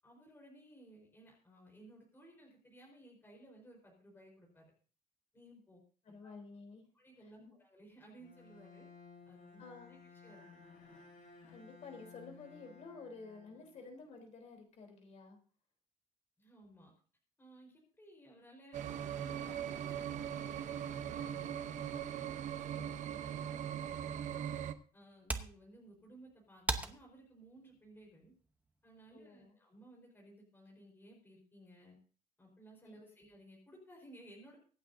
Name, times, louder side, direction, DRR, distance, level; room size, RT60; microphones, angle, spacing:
voice 1, 0.0-4.7 5.3-5.8 6.1-6.3 6.9-8.9 9.3-10.4 16.4-16.9 17.4-24.5 24.9-28.3 28.8-32.0 32.4-34.6, right 1 dB, 15° left, -1 dB, 4.4 m, -58 dB
voice 2, 6.1-6.8 7.4-7.5 9.6-10.0 11.5-15.4 22.7-22.9 29.1-29.6 32.8-33.0, left 4 dB, 50° left, 3 dB, 3.6 m, -52 dB
Bowed string instrument, 8.2-14.2, left 4 dB, 70° left, 7.7 m, -58 dB
sound 1, 18.7-24.7, right 9 dB, 55° right, 0.9 m, -40 dB
sound 2, 25.0-29.2, right 2 dB, 10° right, 0.9 m, -44 dB
24.5 x 9.0 x 2.7 m, 0.40 s
cardioid pair, 165°, 15 cm